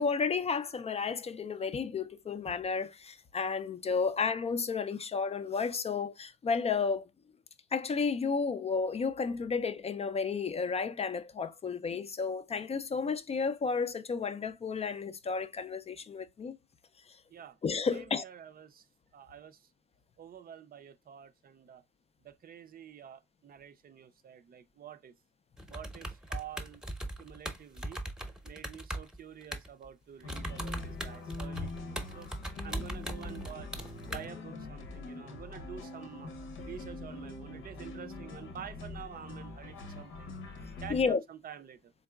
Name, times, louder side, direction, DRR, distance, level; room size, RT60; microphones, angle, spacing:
voice 1, 0.0-7.1 7.7-16.6 17.6-18.2 40.9-41.2, left 5 dB, 30° left, 0.4 m, -32 dB
voice 2, 17.9-18.9 19.1-19.7 20.2-21.8 22.2-25.1 25.7-26.8 27.2-28.0 28.4-32.3 32.6-33.7 34.1-36.3 36.6-40.3 40.8-41.9, right 9 dB, 45° right, 0.5 m, -48 dB
sound 1, 25.6-29.9 30.2-34.3, right 1 dB, 5° right, 0.8 m, -39 dB
sound 2, 30.2-41.1, left 2 dB, 85° left, 0.9 m, -44 dB
3.9 x 3.5 x 2.2 m
cardioid pair, 90°, 20 cm